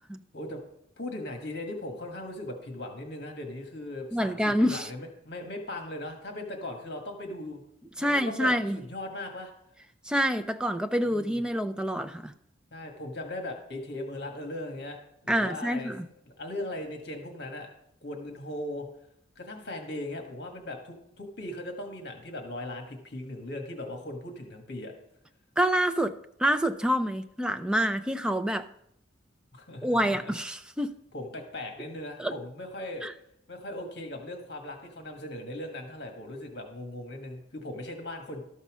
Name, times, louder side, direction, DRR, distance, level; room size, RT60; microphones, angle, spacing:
voice 1, 1.0-7.6 8.0-9.5 11.0-11.4 12.7-15.9 16.2-17.7 18.0-18.9 19.3-24.9 29.5-30.3 31.1-33.1 33.5-38.4, left 1 dB, 55° left, 1.5 m, -38 dB
voice 2, 4.1-4.9 8.0-8.8 10.0-12.3 15.3-16.1 25.6-28.7 29.8-31.0 32.2-32.3 33.0-33.1, equal, 5° right, 0.4 m, -27 dB
13.0 x 5.5 x 6.1 m
head